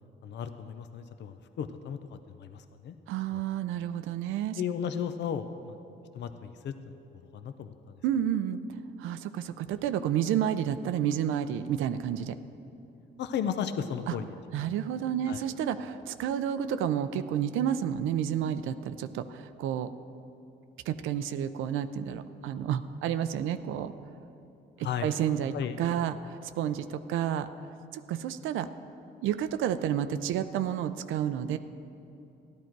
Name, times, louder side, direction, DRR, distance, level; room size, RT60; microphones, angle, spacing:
voice 1, 0.2-3.0 3.3-3.4 4.6-5.8 6.1-6.9 7.3-7.9 13.2-14.2 14.6-14.7 15.2-15.5 24.8-25.1 25.5-25.8, left 8 dB, 60° left, 9 dB, 0.6 m, -35 dB
voice 2, 3.1-4.6 8.0-12.4 14.1-14.2 14.5-19.9 20.9-23.9 24.8-27.5 27.9-28.7 29.2-31.6, right 9 dB, 85° right, 10 dB, 0.5 m, -30 dB
13.5 x 11.5 x 4.6 m, 2.8 s
cardioid pair, 90°, 20 cm